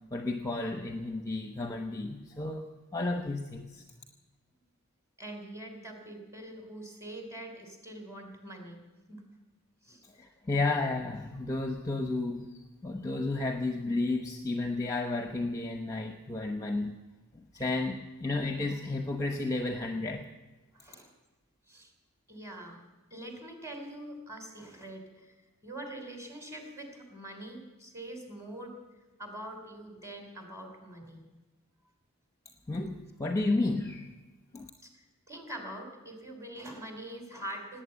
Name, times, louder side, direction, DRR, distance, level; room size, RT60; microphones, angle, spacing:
voice 1, 0.1-3.8 10.0-17.0 17.3-20.3 32.7-34.1 34.5-34.7, left 2 dB, 15° left, 5 dB, 0.9 m, -32 dB
voice 2, 5.2-8.8 9.1-9.2 9.8-10.0 16.5-16.6 17.5-17.6 20.7-21.1 21.7-21.9 22.3-28.8 29.2-31.3 34.8-37.8, right 1 dB, 15° right, 3 dB, 3.0 m, -44 dB
18.5 x 9.0 x 8.7 m, 1.2 s
head